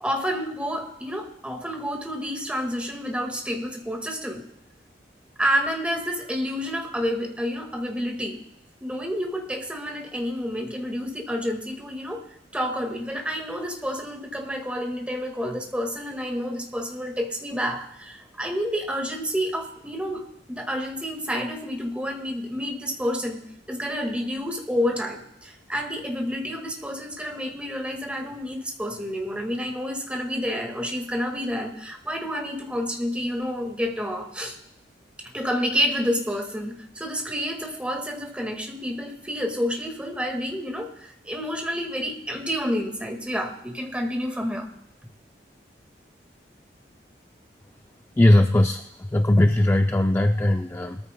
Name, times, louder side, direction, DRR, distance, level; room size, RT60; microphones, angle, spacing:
voice 1, 0.0-4.4 5.4-8.4 8.8-12.2 12.5-34.6 35.3-44.7, equal, 5° right, 2 dB, 1.7 m, -29 dB
voice 2, 48.2-48.8 49.1-51.0, left 1 dB, 15° left, 6 dB, 0.4 m, -19 dB
21.5 x 14.0 x 2.2 m, 0.79 s
head